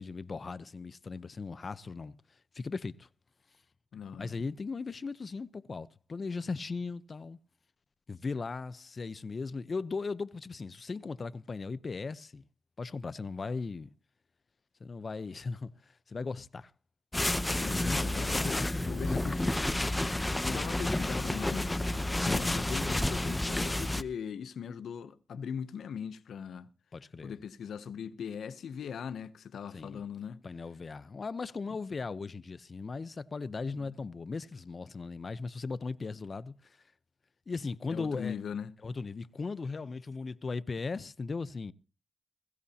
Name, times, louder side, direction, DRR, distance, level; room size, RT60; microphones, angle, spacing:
voice 1, 0.0-3.1 4.2-7.4 8.1-12.4 12.8-13.9 14.8-16.7 17.8-19.8 22.2-22.6 26.9-27.3 29.7-30.0 30.4-36.8 37.5-38.3 38.8-41.7, left 4 dB, 45° left, 0.8 m, -38 dB
voice 2, 3.9-4.3 17.6-19.7 20.4-21.8 22.3-26.7 27.2-30.4 31.7-31.8 33.7-33.9 37.9-38.7, left 7 dB, 80° left, 0.7 m, -40 dB
sound 1, 17.1-24.0, left 1 dB, 15° left, 0.8 m, -30 dB
21.5 x 16.0 x 2.8 m
cardioid pair, 65°, 0 cm